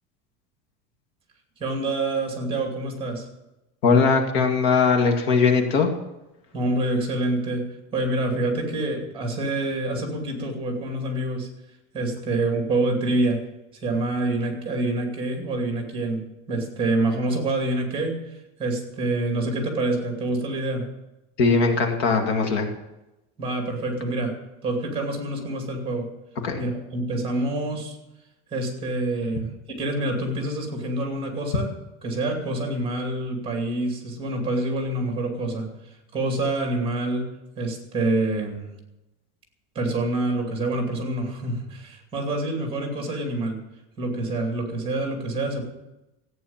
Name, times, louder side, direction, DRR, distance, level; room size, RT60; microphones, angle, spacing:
voice 1, 1.6-3.2 6.5-7.6 7.9-11.5 11.9-13.4 13.8-18.2 18.6-20.9 23.4-24.3 24.6-26.1 26.6-28.0 28.5-31.7 32.0-35.7 36.1-37.3 37.6-38.7 39.7-43.6 44.0-45.6, right 2 dB, 15° right, 3 dB, 2.7 m, -26 dB
voice 2, 3.8-5.9 21.4-22.7 26.4-26.6, left 4 dB, 65° left, 4 dB, 2.2 m, -20 dB
14.5 x 9.3 x 7.3 m, 0.97 s
cardioid pair, 175°, 34 cm